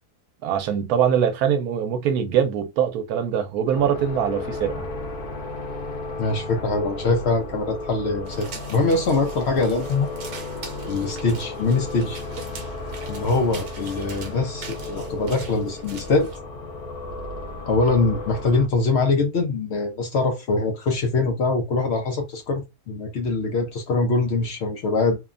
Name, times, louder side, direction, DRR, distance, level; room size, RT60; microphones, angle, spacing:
voice 1, 0.4-4.9, right 8 dB, 85° right, 1.1 m, -23 dB
sound 1, 3.7-18.7, left 2 dB, 85° left, 1.3 m, -34 dB
voice 2, 6.2-10.1 10.9-12.2 13.1-16.3 17.7-25.2, left 3 dB, 60° left, 0.7 m, -23 dB
sound 2, 8.3-16.4, right 4 dB, 60° right, 0.9 m, -42 dB
3.0 x 2.1 x 2.4 m
omnidirectional pair, 1.6 m